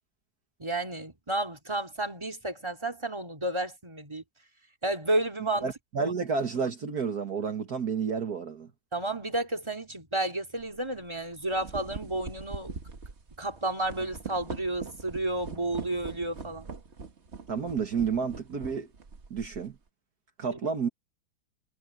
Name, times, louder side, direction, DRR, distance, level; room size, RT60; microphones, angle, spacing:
voice 1, 0.6-4.2 4.8-5.7 6.0-6.1 8.9-12.7 13.4-16.7 20.5-20.6, right 2 dB, 15° right, 2.8 m, -31 dB
voice 2, 5.6-8.7 17.5-18.9 19.3-19.7 20.4-20.9, right 5 dB, 55° right, 1.9 m, -30 dB
sound 1, 10.6-10.8 11.3-19.8, right 4 dB, 40° right, 1.7 m, -42 dB
omnidirectional pair, 2.0 m